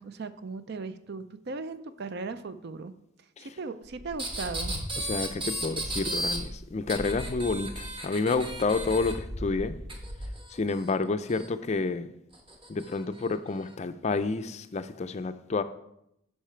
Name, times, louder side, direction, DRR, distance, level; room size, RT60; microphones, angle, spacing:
voice 1, 0.0-2.9 3.4-4.7, right 4 dB, 55° right, 0.5 m, -37 dB
sound 1, 3.8-10.3, equal, 75° right, 1.6 m, -40 dB
sound 2, 4.2-6.4 6.9-9.1 9.9-11.5 12.3-12.9 13.7-13.8, right 1 dB, 25° right, 1.3 m, -35 dB
voice 2, 5.0-9.8 10.5-12.1 12.7-15.6, left 3 dB, 35° left, 0.4 m, -29 dB
9.8 x 5.6 x 4.4 m
head